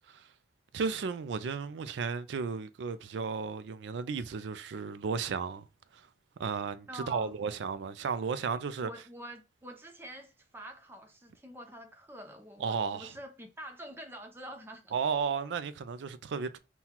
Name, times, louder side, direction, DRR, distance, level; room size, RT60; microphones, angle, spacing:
voice 1, 0.7-5.7 5.9-6.1 6.4-8.9 12.6-13.2 14.9-16.6, right 5 dB, 75° right, 0.4 m, -34 dB
voice 2, 6.9-7.4 8.8-14.9, right 1 dB, 10° right, 0.6 m, -46 dB
5.5 x 2.3 x 2.9 m
head